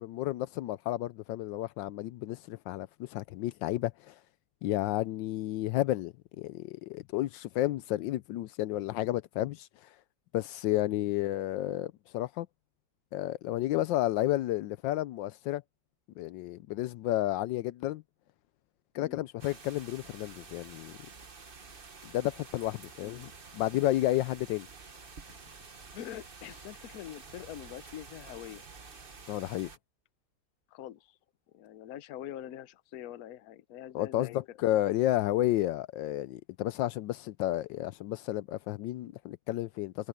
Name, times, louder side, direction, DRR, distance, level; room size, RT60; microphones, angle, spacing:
voice 1, 0.0-4.1 4.6-9.7 10.3-12.5 13.1-15.6 16.2-18.0 18.9-20.9 22.0-24.7 29.3-29.7 33.9-40.1, left 15 dB, 80° left, 1.2 m, -31 dB
sound 1, 19.4-29.8, right 4 dB, 35° right, 1.3 m, -50 dB
voice 2, 25.9-28.6 30.7-31.2 31.5-34.4, left 12 dB, 60° left, 1.1 m, -44 dB
omnidirectional pair, 2.0 m